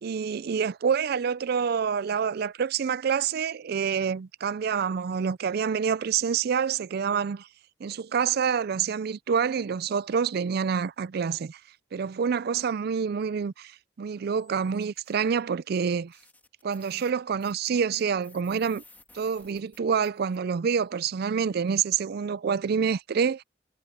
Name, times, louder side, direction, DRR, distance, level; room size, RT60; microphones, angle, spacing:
voice 1, 0.0-7.5 7.8-11.6 11.9-13.7 14.0-16.1 16.6-18.8 19.1-23.4, right 6 dB, 55° right, 0.4 m, -27 dB
sound 1, 14.4-15.2 15.8-15.9 16.1-20.4, left 3 dB, 10° left, 1.8 m, -56 dB
head